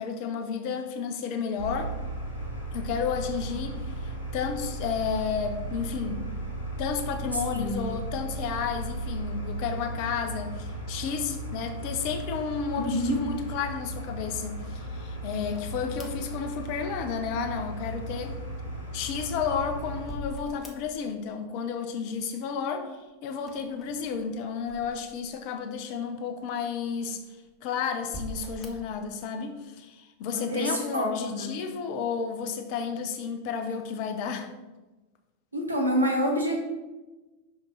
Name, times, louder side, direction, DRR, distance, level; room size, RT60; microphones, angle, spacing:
voice 1, 0.0-1.9 2.7-6.3 6.8-18.4 18.9-22.9 23.2-27.2 27.6-34.5, left 6 dB, 45° left, 7 dB, 0.8 m, -32 dB
sound 1, 1.6-20.1, right 1 dB, 65° left, 1.7 m, -36 dB
voice 2, 7.3-7.8 12.7-13.2 30.3-31.6 35.5-36.6, equal, 85° right, 0 dB, 1.3 m, -27 dB
sound 2, 15.5-17.2 19.0-21.3 21.5-22.2 23.4-25.5 26.1-26.2 27.0-27.6 28.0-29.0, left 1 dB, 20° left, 1.0 m, -44 dB
5.8 x 5.4 x 4.0 m, 1.1 s
figure-of-eight pair, 90°, 0 cm